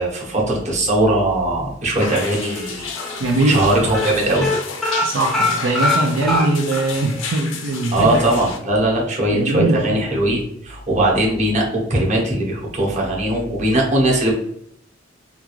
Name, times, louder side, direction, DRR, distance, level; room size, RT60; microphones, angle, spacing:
voice 1, 0.0-2.9 3.5-4.5 7.9-14.3, right 1 dB, 40° right, -3 dB, 1.0 m, -19 dB
sound 1, 2.0-8.6, left 5 dB, 85° left, 0.6 m, -32 dB
sound 2, 2.1-2.7 3.0-3.2 3.4-3.7 3.9-6.9 7.3-7.4 7.7-7.8, left 2 dB, ahead, 0.5 m, -22 dB
voice 2, 3.2-3.6 5.0-8.2 9.3-10.0, right 2 dB, 75° right, 1 dB, 0.5 m, -21 dB
3.5 x 2.4 x 3.0 m, 0.74 s
head